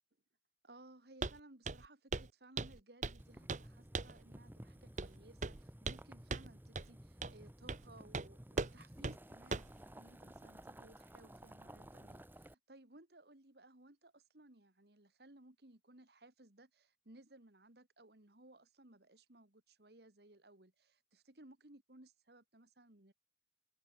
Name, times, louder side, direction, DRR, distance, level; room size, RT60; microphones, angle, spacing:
voice 1, 0.6-23.1, right 2 dB, 60° right, 2.3 m, -61 dB
Walk footsteps, 1.2-1.4 1.6-2.3 2.6-3.2 3.5-3.7 3.9-4.2 5.0-5.1 5.4-6.0 6.3-6.5 6.7-6.9 7.2-7.4 7.7-7.8 8.1-8.3 8.6-8.7 9.0-9.2 9.5-9.7, right 3 dB, 40° right, 1.0 m, -39 dB
Boiling, 3.2-12.5, right 1 dB, 10° right, 1.4 m, -55 dB
head